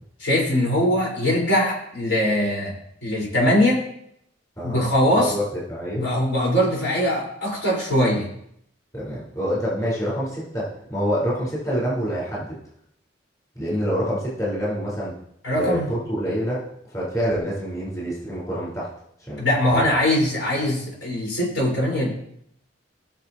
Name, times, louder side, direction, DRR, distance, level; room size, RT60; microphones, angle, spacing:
voice 1, 0.2-2.7 3.0-3.8 4.6-5.3 5.9-8.3 15.4-15.9 19.4-22.1, left 1 dB, 80° left, -3 dB, 5.0 m, -21 dB
voice 2, 5.1-6.0 8.9-12.6 13.5-15.1 15.5-16.6 16.9-18.9 19.3-19.5 19.7-19.9, equal, 20° left, -7 dB, 4.8 m, -26 dB
19.5 x 6.8 x 3.1 m, 0.72 s
head